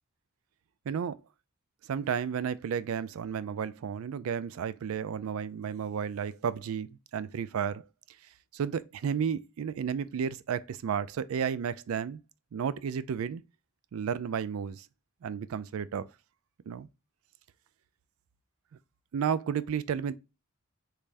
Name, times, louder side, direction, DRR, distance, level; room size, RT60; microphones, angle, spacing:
voice 1, 0.9-1.2 1.9-7.8 8.5-12.2 12.5-13.4 13.9-14.9 15.2-16.1 16.7-16.9 19.1-20.1, right 7 dB, 75° right, 0.4 m, -32 dB
3.3 x 3.3 x 2.5 m
head